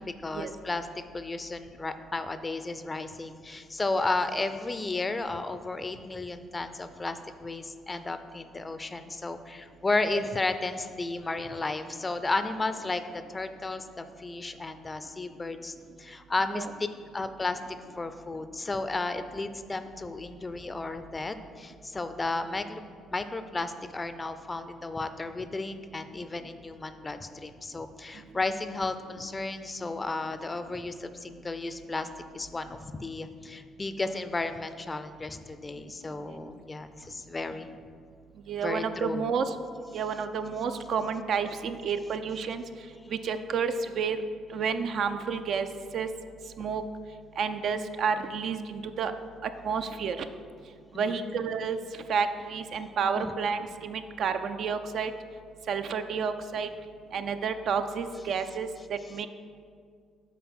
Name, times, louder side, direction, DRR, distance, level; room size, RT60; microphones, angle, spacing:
voice 1, 0.0-13.0 13.3-16.9 17.1-17.6 18.0-22.8 23.1-32.1 32.3-37.7 38.6-39.3 50.9-51.2 53.2-53.3, left 3 dB, 25° left, 10 dB, 0.4 m, -33 dB
voice 2, 38.5-39.6 39.9-42.6 43.1-44.2 44.5-45.7 45.9-46.1 46.6-46.8 47.4-49.1 49.4-50.3 51.0-51.8 52.1-55.1 55.7-56.7 57.1-59.3, right 6 dB, 60° right, 9 dB, 0.4 m, -30 dB
7.2 x 3.9 x 4.3 m, 2.1 s
hypercardioid pair, 50°, 0 cm